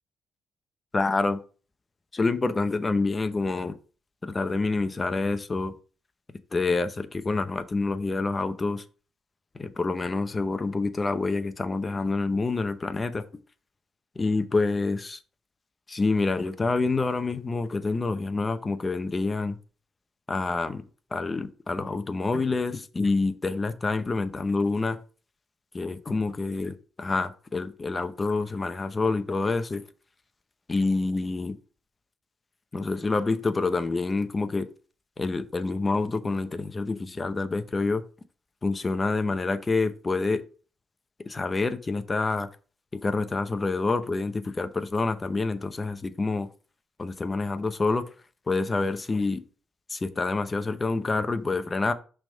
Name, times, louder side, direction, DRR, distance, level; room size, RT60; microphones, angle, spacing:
voice 1, 0.9-1.4 2.1-3.7 4.2-5.7 6.5-8.8 9.5-13.2 14.2-15.2 15.9-19.6 20.3-20.8 21.1-25.0 25.7-29.8 30.7-31.6 32.7-34.7 35.2-38.0 38.6-40.4 41.3-42.5 42.9-46.5 47.0-48.1 48.5-49.4 49.9-51.9, left 3 dB, 25° left, 0.8 m, -27 dB
5.9 x 3.6 x 5.4 m
cardioid pair, 90°, 0 cm